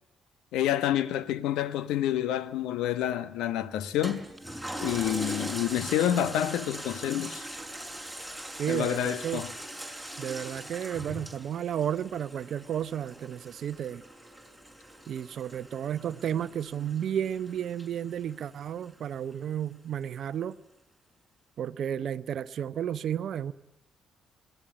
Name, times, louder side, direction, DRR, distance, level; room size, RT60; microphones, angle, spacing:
voice 1, 0.5-4.2 4.8-7.4 8.7-9.5, left 11 dB, 75° left, 1.1 m, -28 dB
Toilet flush, 4.0-18.8 19.3-19.4, right 1 dB, 5° left, 5.7 m, -41 dB
voice 2, 8.6-9.4 10.2-14.0 15.1-20.6 21.6-23.5, right 9 dB, 60° right, 0.7 m, -32 dB
21.5 x 17.0 x 9.7 m
hypercardioid pair, 45°, 0 cm